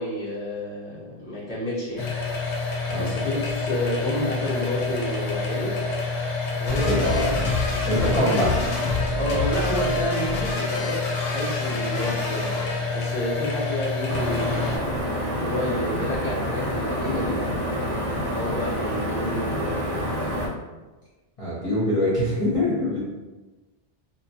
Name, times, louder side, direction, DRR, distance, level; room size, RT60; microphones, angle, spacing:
voice 1, 0.0-2.1 2.9-5.8 6.6-7.3 7.9-8.7 9.1-12.5 12.9-14.9 15.3-17.5 18.3-20.1, left 1 dB, 5° right, -10 dB, 0.6 m, -30 dB
sound 1, 2.0-14.8, left 4 dB, 90° left, 0.9 m, -28 dB
sound 2, 6.7-12.8, left 2 dB, 65° left, 0.8 m, -28 dB
voice 2, 6.8-7.4 7.9-8.5 21.4-23.0, equal, 35° left, -9 dB, 0.7 m, -24 dB
sound 3, 14.1-20.5, equal, 80° right, 0.9 m, -27 dB
2.6 x 2.1 x 2.7 m, 1.2 s
omnidirectional pair, 1.1 m